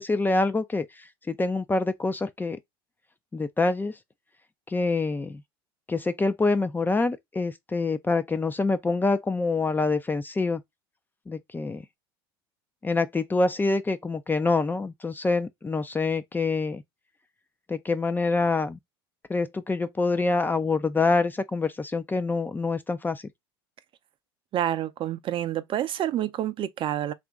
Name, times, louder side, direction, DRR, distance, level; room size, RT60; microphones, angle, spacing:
voice 1, 0.0-2.6 3.3-3.9 4.7-5.4 5.9-10.6 11.3-11.8 12.8-16.8 17.7-18.8 19.3-23.2, left 3 dB, 15° left, 0.4 m, -26 dB
voice 2, 24.5-27.1, right 11 dB, 45° right, 0.5 m, -28 dB
2.9 x 2.5 x 3.5 m
hypercardioid pair, 85°, 13 cm